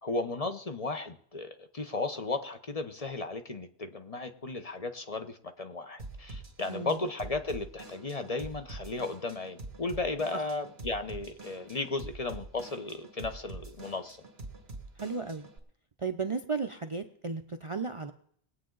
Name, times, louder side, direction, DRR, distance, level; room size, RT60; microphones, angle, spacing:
voice 1, 0.0-14.2, left 3 dB, 35° left, 7 dB, 0.9 m, -35 dB
Drum kit / Drum, 6.0-15.6, right 2 dB, 70° right, 2.2 m, -46 dB
voice 2, 6.7-7.0 10.3-10.5 15.0-15.5 16.0-18.1, right 4 dB, 35° right, 7 dB, 0.6 m, -34 dB
21.0 x 8.5 x 3.9 m, 0.63 s
omnidirectional pair, 1.1 m